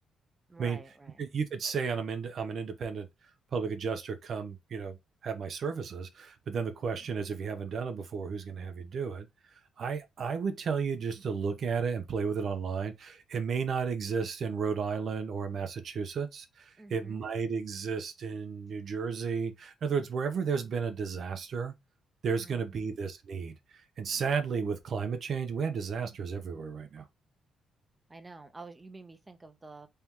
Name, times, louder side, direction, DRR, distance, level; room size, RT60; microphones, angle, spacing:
voice 1, 0.5-1.2 16.8-17.3 22.4-23.0 28.1-29.9, right 3 dB, 20° right, 0.8 m, -49 dB
voice 2, 1.2-3.1 3.5-5.0 5.2-9.3 9.8-21.7 22.2-27.1, right 6 dB, 55° right, 0.8 m, -33 dB
3.3 x 2.9 x 3.7 m
cardioid pair, 90°, 0 cm